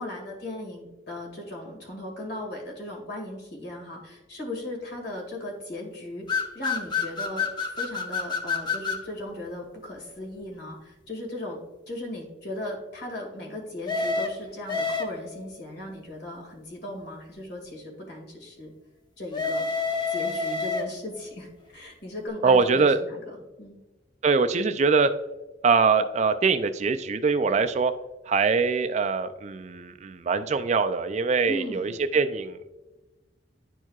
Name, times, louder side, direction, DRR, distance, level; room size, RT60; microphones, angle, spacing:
voice 1, 0.0-11.6 11.9-18.7 19.2-19.7 20.1-23.8 31.5-31.9, left 1 dB, 65° left, 0 dB, 2.1 m, -37 dB
sound 1, 6.3-9.1 13.9-15.4 19.3-21.2, left 4 dB, 25° left, 0.7 m, -28 dB
voice 2, 22.4-23.0 24.2-25.1 25.6-27.9 28.3-32.7, right 4 dB, 40° right, 9 dB, 0.4 m, -23 dB
11.0 x 4.5 x 2.4 m, 1.1 s
head